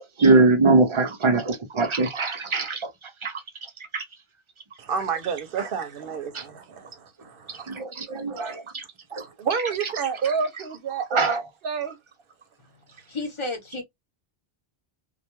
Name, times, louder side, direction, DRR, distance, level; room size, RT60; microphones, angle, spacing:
voice 1, 0.2-2.9 3.2-3.4 3.9-4.0 5.6-5.7 6.3-6.4 7.5-8.8 9.1-9.2 11.1-11.4, right 3 dB, 50° right, 0.3 m, -22 dB
voice 2, 4.8-7.8 8.3-8.6 9.2-11.4 11.6-12.0, right 6 dB, 65° right, 0.8 m, -29 dB
voice 3, 13.1-13.8, left 2 dB, 35° left, 0.7 m, -31 dB
2.3 x 2.2 x 2.8 m
omnidirectional pair, 1.0 m